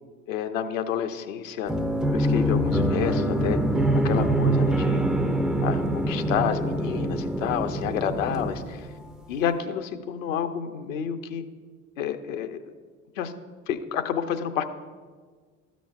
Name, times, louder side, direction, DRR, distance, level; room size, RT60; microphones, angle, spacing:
voice 1, 0.3-1.7 2.1-3.6 3.9-5.0 5.6-8.9 9.3-11.5 12.0-12.7 13.2-13.3 13.7-14.6, left 8 dB, 65° left, 9 dB, 0.7 m, -29 dB
sound 1, 1.7-9.2, right 1 dB, ahead, 0.4 m, -24 dB
13.5 x 6.1 x 2.4 m, 1.6 s
figure-of-eight pair, 60°, 42 cm